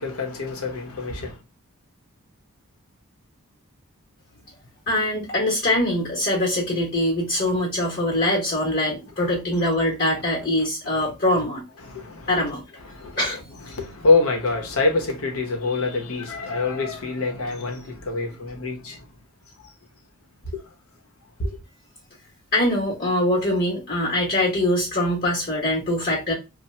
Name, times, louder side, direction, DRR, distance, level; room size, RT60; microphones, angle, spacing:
voice 1, 0.0-1.4 7.5-7.6 9.2-9.4 10.9-11.1 11.8-12.4 12.8-13.2 13.6-19.1 20.5-20.6 21.4-21.6, left 3 dB, 80° left, 0.8 m, -26 dB
voice 2, 4.9-11.6 12.3-12.6 13.2-13.4 22.5-26.3, left 1 dB, 45° left, 1.0 m, -23 dB
2.8 x 2.1 x 3.1 m
head